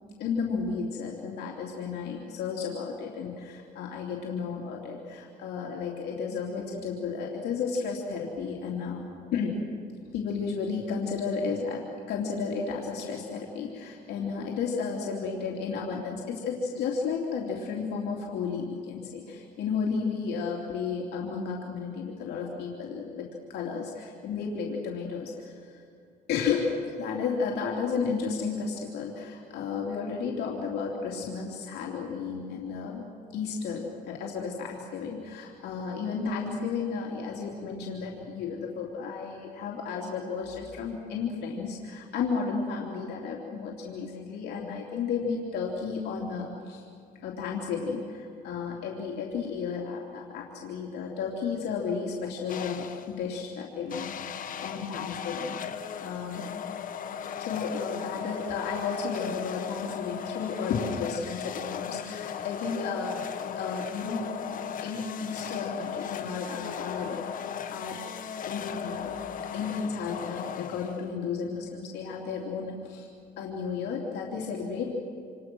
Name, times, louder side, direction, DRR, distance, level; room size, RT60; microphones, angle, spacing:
voice 1, 0.2-9.0 9.3-9.5 10.1-25.8 26.3-33.0 33.3-46.8 47.2-56.4 57.4-63.2 63.6-67.2 67.7-68.0 68.4-69.1 69.5-73.1 73.4-74.9, left 5 dB, 75° left, -2 dB, 3.3 m, -33 dB
sound 1, 52.5-53.2 53.9-71.3, left 8 dB, 55° left, 1.4 m, -37 dB
28.0 x 27.5 x 6.3 m, 2.3 s
cardioid pair, 110°, 17 cm